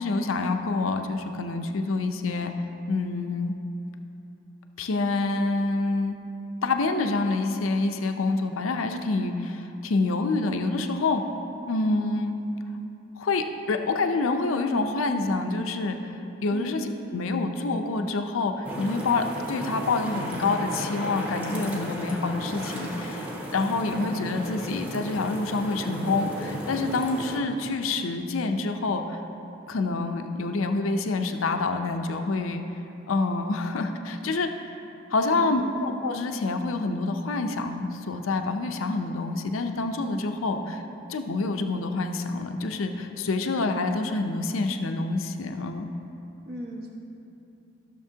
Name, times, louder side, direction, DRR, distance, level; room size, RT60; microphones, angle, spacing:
voice 1, 0.0-2.5 2.9-3.6 4.8-6.2 6.6-11.2 11.7-12.4 13.2-16.1 16.4-23.3 23.5-29.2 29.7-32.6 33.1-34.5 35.1-40.8 41.1-45.9, left 3 dB, 85° left, 6 dB, 0.5 m, -27 dB
sound 1, 18.6-27.4, equal, 10° right, 1.0 m, -35 dB
voice 2, 35.2-35.7 46.4-46.9, right 1 dB, 50° right, -1 dB, 1.1 m, -37 dB
14.5 x 6.5 x 2.8 m, 2.9 s
head